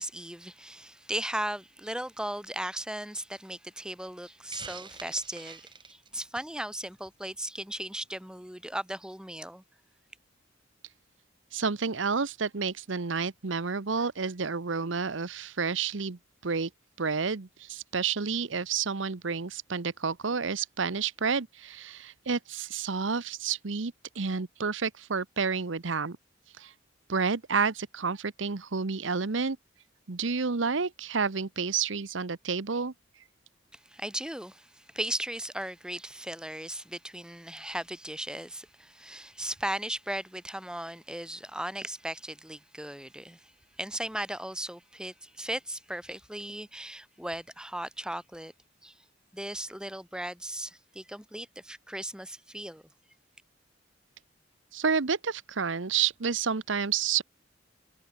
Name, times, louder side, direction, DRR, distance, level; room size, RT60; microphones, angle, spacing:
voice 1, 0.0-9.6 33.9-43.5 43.8-48.5 48.8-48.9 49.3-52.8, right 1 dB, 5° right, 3.7 m, -37 dB
Hiss, 4.5-6.6, right 5 dB, 25° right, 5.2 m, -45 dB
voice 2, 11.5-16.7 17.0-26.2 26.6-26.7 27.1-29.6 30.1-32.9 54.7-57.2, right 5 dB, 70° right, 1.0 m, -30 dB
head